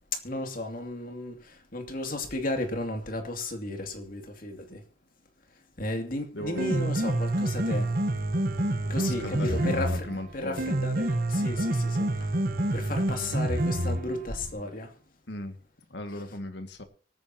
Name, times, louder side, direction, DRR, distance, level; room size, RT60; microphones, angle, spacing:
voice 1, 0.1-4.8 5.8-7.9 8.9-10.1 10.3-12.3 12.7-14.9, left 2 dB, 50° left, 2.6 m, -34 dB
voice 2, 6.3-6.9 8.9-10.9 15.3-15.6 15.9-16.8, left 1 dB, 65° left, 2.1 m, -37 dB
Piano, 6.4-14.4, right 1 dB, 50° right, 1.2 m, -28 dB
24.5 x 9.5 x 2.9 m
head